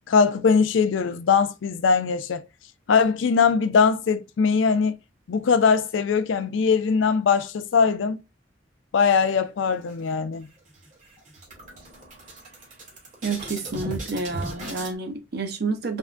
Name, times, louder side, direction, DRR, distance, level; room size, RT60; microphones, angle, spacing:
voice 1, 0.1-2.4 2.9-4.9 5.3-8.2 8.9-10.5, left 5 dB, 85° left, 0.4 m, -21 dB
sound 1, 9.6-10.4 10.7-10.9 11.2-14.9, right 2 dB, 40° right, 1.2 m, -37 dB
voice 2, 13.2-16.0, right 3 dB, 60° right, 0.7 m, -29 dB
3.5 x 2.1 x 2.4 m
head